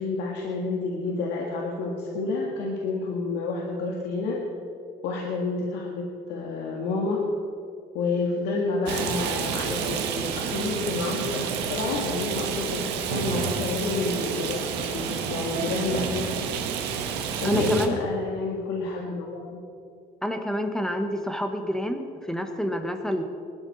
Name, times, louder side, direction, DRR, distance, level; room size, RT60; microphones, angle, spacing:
voice 1, 0.0-4.4 5.0-7.2 7.9-14.7 14.9-16.5 17.4-19.6, left 3 dB, 85° left, -1 dB, 1.8 m, -29 dB
Rain, 8.9-17.9, right 7 dB, 90° right, 1.5 m, -29 dB
voice 2, 17.4-18.0 20.2-23.2, equal, 5° left, 5 dB, 1.3 m, -28 dB
19.5 x 13.0 x 4.2 m, 2.5 s
cardioid pair, 110°, 17 cm